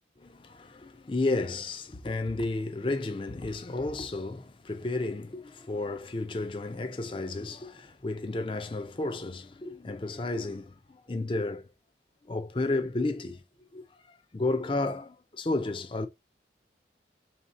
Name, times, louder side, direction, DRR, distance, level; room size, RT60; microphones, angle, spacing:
voice 1, 0.2-11.7 12.3-13.4 13.7-16.1, left 2 dB, 30° left, 0.4 m, -32 dB
3.7 x 2.8 x 3.6 m
head